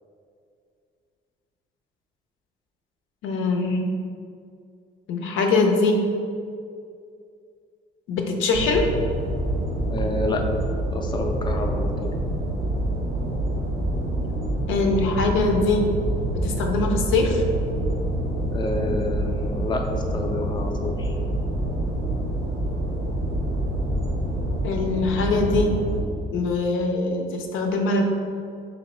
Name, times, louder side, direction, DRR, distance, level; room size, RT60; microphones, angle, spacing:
voice 1, 3.2-3.8 5.1-6.0 8.1-8.9 14.7-15.8 16.4-17.4 24.6-25.7 26.3-28.0, left 3 dB, 85° left, 2 dB, 0.5 m, -22 dB
sound 1, 8.5-26.0, right 1 dB, 75° right, 0.7 m, -26 dB
voice 2, 9.9-10.4 10.9-12.1 18.5-19.9 20.1-21.1, left 2 dB, 25° left, 3 dB, 0.4 m, -28 dB
3.0 x 2.8 x 4.2 m, 2.3 s
cardioid pair, 90°, 20 cm